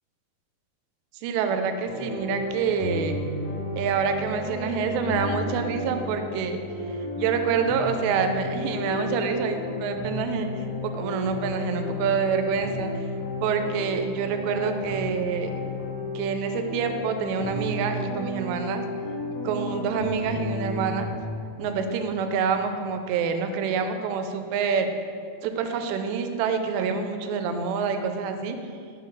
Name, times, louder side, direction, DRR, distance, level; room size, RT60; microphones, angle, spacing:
voice 1, 1.2-3.2 3.7-6.6 7.2-13.1 13.4-15.5 16.1-18.8 19.4-21.1 21.6-24.9 25.4-28.6, right 6 dB, 90° right, 6 dB, 2.7 m, -27 dB
sound 1, 1.8-21.2, left 2 dB, 65° left, 1.5 m, -33 dB
6.2 x 3.7 x 5.6 m, 2.5 s
omnidirectional pair, 4.9 m